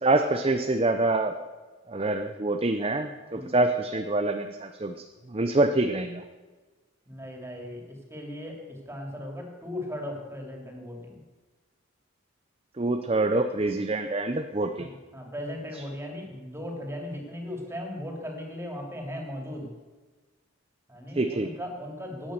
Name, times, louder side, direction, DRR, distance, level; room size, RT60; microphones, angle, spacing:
voice 1, 0.0-1.4 1.9-4.9 5.3-6.2 12.8-14.9 21.1-21.5, right 2 dB, 30° right, 6 dB, 0.7 m, -26 dB
voice 2, 7.1-11.2 14.7-19.7 20.9-22.3, left 1 dB, 15° right, 1 dB, 3.3 m, -37 dB
16.5 x 10.0 x 6.7 m, 1.3 s
head